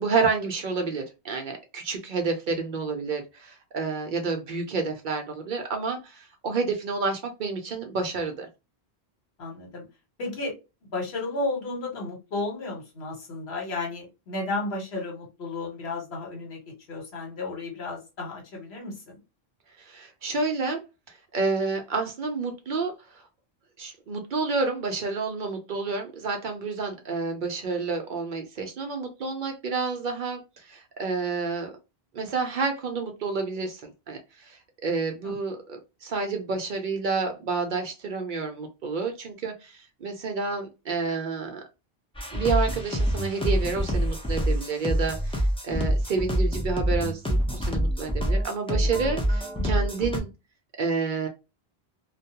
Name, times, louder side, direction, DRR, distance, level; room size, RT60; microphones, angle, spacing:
voice 1, 0.0-8.5 19.8-20.8 21.1-23.2 23.8-31.7 32.1-41.6 42.3-50.3 50.8-51.3, right 4 dB, 60° right, 4 dB, 0.6 m, -29 dB
voice 2, 9.4-9.8 10.2-10.5 10.9-16.6 16.9-19.2 35.2-35.3 48.7-49.0, left 2 dB, 75° left, 0 dB, 1.2 m, -33 dB
sound 1, 42.1-50.2, equal, 10° left, 0.4 m, -26 dB
2.2 x 2.1 x 2.7 m, 0.26 s
omnidirectional pair, 1.1 m